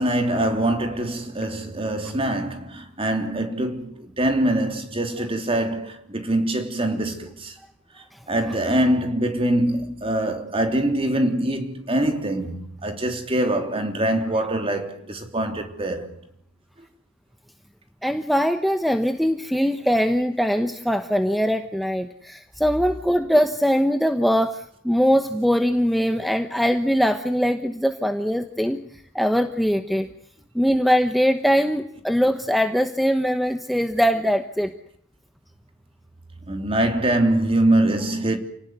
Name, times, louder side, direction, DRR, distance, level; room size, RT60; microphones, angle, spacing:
voice 1, 0.0-7.5 8.3-16.2 36.5-38.4, right 1 dB, 30° right, 3.5 m, -23 dB
voice 2, 18.0-28.8 29.1-30.1 30.5-34.7, equal, ahead, 1.1 m, -21 dB
29.0 x 18.5 x 9.5 m
head